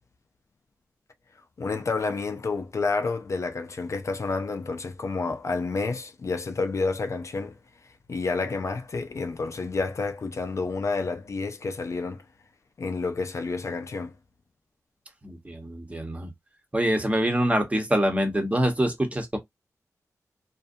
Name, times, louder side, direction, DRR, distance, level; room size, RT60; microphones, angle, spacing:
voice 1, 1.6-7.6 8.1-12.2 12.8-14.1, left 4 dB, 55° left, 0.4 m, -29 dB
voice 2, 15.2-16.3 16.7-19.4, equal, 20° right, 0.9 m, -25 dB
2.5 x 2.1 x 2.5 m
cardioid pair, 60°, 6 cm